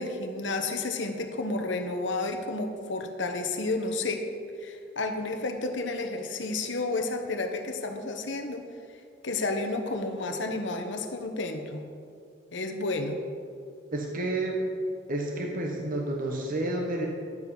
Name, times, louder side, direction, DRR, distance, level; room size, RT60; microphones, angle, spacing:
voice 1, 0.0-4.2 4.6-8.7 9.2-11.8 12.5-13.2, left 2 dB, 70° left, 5 dB, 1.1 m, -31 dB
voice 2, 13.9-14.6 15.1-17.1, right 2 dB, 45° right, 1 dB, 1.1 m, -30 dB
11.0 x 7.3 x 5.5 m, 2.3 s
head